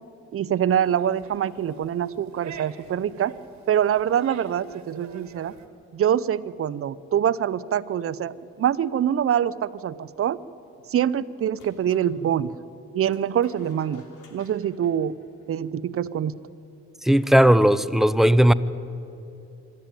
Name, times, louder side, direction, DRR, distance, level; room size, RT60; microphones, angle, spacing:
voice 1, 0.3-3.3 3.7-5.5 5.9-10.4 10.9-12.5 12.9-14.0 14.3-15.1 15.5-16.3, right 9 dB, 50° right, 0.7 m, -24 dB
sound 1, 0.7-5.7, right 7 dB, 65° right, 1.7 m, -46 dB
sound 2, 11.5-12.1 13.1-15.8, left 3 dB, 80° left, 3.2 m, -53 dB
voice 2, 17.0-18.5, equal, ahead, 0.5 m, -17 dB
25.0 x 12.0 x 9.0 m
cardioid pair, 90°, 30 cm